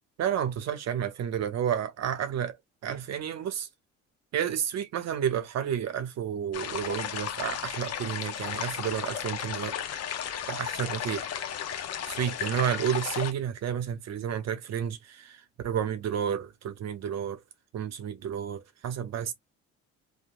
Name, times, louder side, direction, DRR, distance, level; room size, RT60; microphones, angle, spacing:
voice 1, 0.2-2.6 2.8-3.7 4.3-9.7 10.5-11.3 12.1-17.4 17.7-19.3, right 9 dB, 55° right, 0.6 m, -31 dB
sound 1, 6.5-13.3, left 9 dB, 50° left, 0.6 m, -34 dB
3.1 x 2.1 x 2.5 m
supercardioid pair, 70°, 33 cm